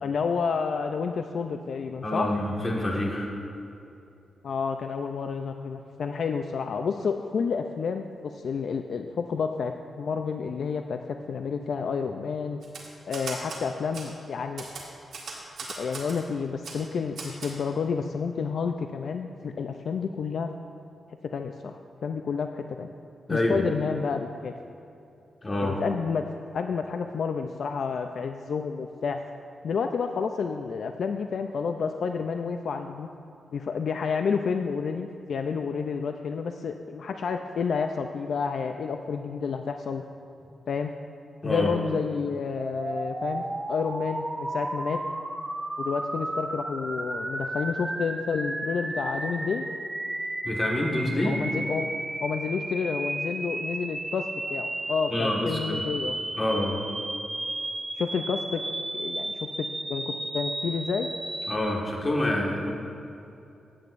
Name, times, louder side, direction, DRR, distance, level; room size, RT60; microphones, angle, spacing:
voice 1, 0.0-2.3 4.4-11.0 11.3-12.6 13.0-14.6 15.6-20.5 21.3-21.8 22.0-22.9 23.3-24.5 25.6-26.2 26.5-29.2 29.6-33.1 33.5-40.0 40.7-40.9 41.4-45.0 45.8-49.7 51.2-51.9 52.2-56.1 57.9-58.6 58.9-61.1, left 5 dB, 65° left, 6 dB, 0.4 m, -30 dB
voice 2, 2.0-3.3 23.3-23.7 25.4-25.8 41.4-41.7 50.4-51.4 55.1-55.8 56.3-56.8 61.5-62.7, left 1 dB, 25° left, -1 dB, 1.5 m, -27 dB
Typewriter, 12.6-13.6 13.9-14.1 14.6-16.2 16.6-16.8 17.2-17.5, right 4 dB, 80° right, 2.0 m, -38 dB
sound 1, 42.6-61.6, right 1 dB, 15° right, 0.6 m, -33 dB
16.0 x 8.7 x 2.5 m, 2.7 s
wide cardioid pair, 135°, 0 cm